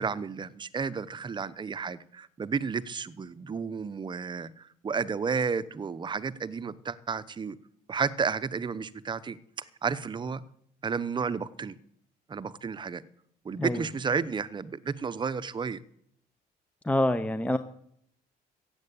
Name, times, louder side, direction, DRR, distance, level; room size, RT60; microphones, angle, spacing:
voice 1, 0.0-7.6 7.9-10.4 10.8-11.8 12.3-13.0 13.4-15.8, right 5 dB, 25° right, 15 dB, 0.8 m, -32 dB
voice 2, 16.8-17.6, left 1 dB, 10° left, 11 dB, 0.7 m, -26 dB
15.0 x 8.1 x 8.6 m, 0.71 s
cardioid pair, 110°, 17 cm